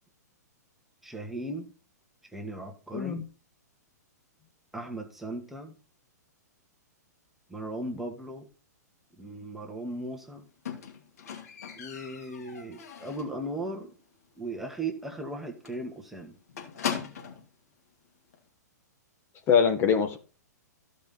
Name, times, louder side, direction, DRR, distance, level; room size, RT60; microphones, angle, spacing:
voice 1, 1.0-1.7 2.3-3.2 4.7-5.7 7.5-8.5 9.2-10.5 11.8-13.9 14.4-16.4, right 1 dB, ahead, 1.5 m, -37 dB
voice 2, 2.9-3.2 19.5-20.2, left 7 dB, 25° left, 1.4 m, -23 dB
Squeak, 10.7-13.4 13.8-14.2 14.4-14.5 14.9-15.0 15.3-15.4 15.7-17.5 18.3-18.4, left 7 dB, 60° left, 2.6 m, -38 dB
14.5 x 5.5 x 4.1 m
figure-of-eight pair, 110°, 9 cm